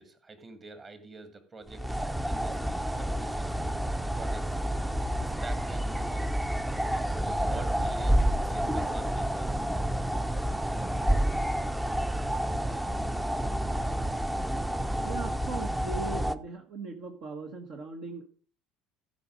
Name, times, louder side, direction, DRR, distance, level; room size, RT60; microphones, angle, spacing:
voice 1, 0.0-3.6 4.2-4.6 5.2-6.3 6.8-9.6, right 3 dB, 30° right, 8 dB, 2.3 m, -46 dB
sound 1, 1.7-16.4, right 1 dB, 10° right, 0.7 m, -29 dB
voice 2, 15.0-18.3, right 4 dB, 55° right, 3 dB, 1.4 m, -39 dB
14.5 x 5.4 x 5.1 m, 0.42 s
figure-of-eight pair, 60°, 0 cm